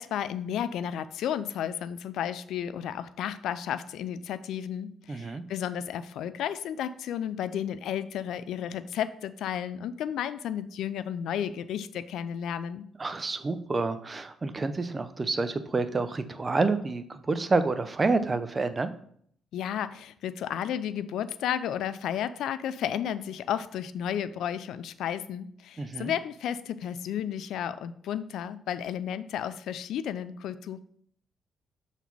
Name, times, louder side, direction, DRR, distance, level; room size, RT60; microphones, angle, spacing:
voice 1, 0.0-12.9 19.5-30.8, left 9 dB, 80° left, 14 dB, 0.4 m, -33 dB
voice 2, 5.1-5.4 13.0-18.9 25.8-26.1, right 3 dB, 30° right, 10 dB, 0.6 m, -28 dB
6.9 x 4.1 x 4.6 m, 0.63 s
cardioid pair, 90°, 0 cm